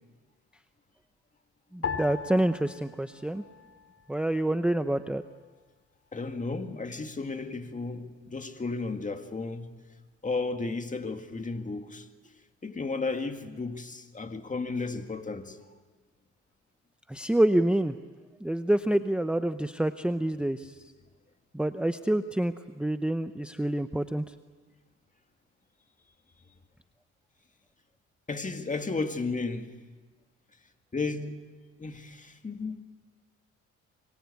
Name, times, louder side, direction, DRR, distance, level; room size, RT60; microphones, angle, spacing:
voice 1, 1.7-3.4 4.1-5.2 17.1-17.9 18.4-20.7 21.5-24.2, right 1 dB, 5° right, 0.7 m, -27 dB
sound 1, 1.8-4.4 4.6-5.5 6.1-6.6, left 6 dB, 50° left, 3.2 m, -39 dB
voice 2, 6.1-9.7 10.2-12.1 12.6-15.6 28.3-29.7 30.9-31.4 31.8-32.8, left 3 dB, 25° left, 1.9 m, -33 dB
25.5 x 23.5 x 8.4 m
cardioid pair, 90°, 30 cm